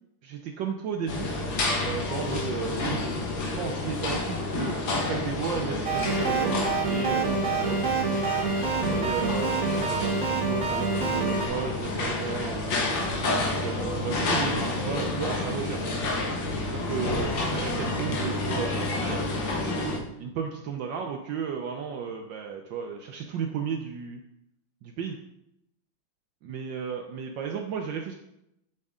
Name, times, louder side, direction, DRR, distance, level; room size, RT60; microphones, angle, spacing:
voice 1, 0.2-1.3 1.8-3.0 3.4-7.8 8.9-12.8 13.5-15.9 16.7-19.2 20.2-24.2 24.8-25.2 26.4-28.1, right 6 dB, 70° right, 2 dB, 1.3 m, -34 dB
sound 1, 1.1-20.0, left 2 dB, 70° left, 1.9 m, -29 dB
sound 2, 5.9-11.5, right 5 dB, 45° right, 1.1 m, -27 dB
8.3 x 6.7 x 3.7 m, 0.82 s
omnidirectional pair, 2.2 m